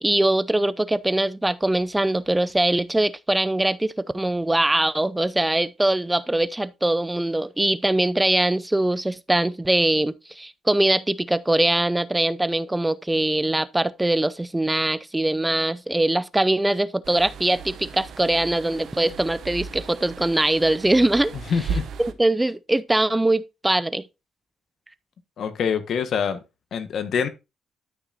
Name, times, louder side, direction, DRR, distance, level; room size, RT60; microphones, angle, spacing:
voice 1, 0.0-21.3 22.0-24.0, right 1 dB, 10° right, 0.6 m, -22 dB
sound 1, 17.0-22.1, right 6 dB, 65° right, 0.8 m, -36 dB
voice 2, 21.3-21.9 25.4-26.4 26.7-27.3, left 7 dB, 60° left, 1.3 m, -25 dB
13.0 x 6.0 x 2.6 m
cardioid pair, 90°, 0 cm